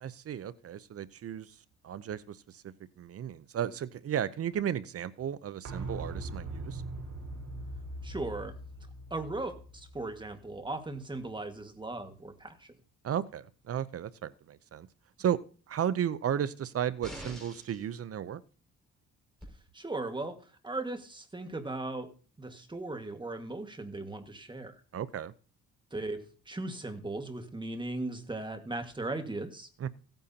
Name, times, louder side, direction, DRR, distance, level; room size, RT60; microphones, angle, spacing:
voice 1, 0.0-1.5 1.8-2.6 3.0-6.8 13.0-14.9 15.2-15.4 15.7-18.4 24.9-25.3 29.8-29.9, right 9 dB, 50° right, 17 dB, 0.7 m, -34 dB
sound 1, 5.6-11.3 11.6-11.7, right 2 dB, 70° right, 4.0 m, -41 dB
voice 2, 8.0-8.6 9.1-12.7 19.7-20.4 20.6-22.1 22.4-24.8 25.9-29.7, right 2 dB, 15° right, 7 dB, 1.7 m, -37 dB
sound 2, 17.0-17.8 19.4-19.5, equal, ahead, 5.5 m, -44 dB
16.5 x 9.1 x 2.8 m, 0.39 s
cardioid pair, 90°, 30 cm